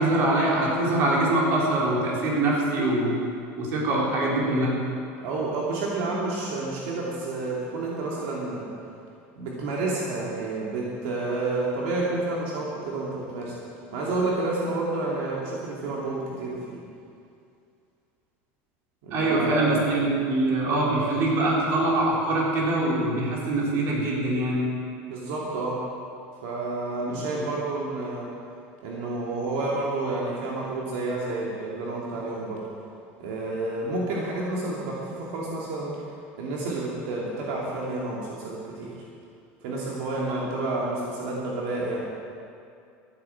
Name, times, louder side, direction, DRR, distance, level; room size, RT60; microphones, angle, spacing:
voice 1, 0.0-3.1 3.6-4.8 19.1-24.6 27.1-27.2 40.3-40.5, right 2 dB, 45° right, -4 dB, 3.7 m, -24 dB
voice 2, 5.2-8.7 9.4-13.5 13.9-16.8 19.0-19.8 25.1-25.8 26.4-28.3 28.8-32.6 33.2-36.0 36.4-39.0 39.6-42.1, right 2 dB, 70° right, -4 dB, 2.6 m, -30 dB
13.5 x 10.5 x 7.5 m, 2.4 s
cardioid pair, 165°, 6 cm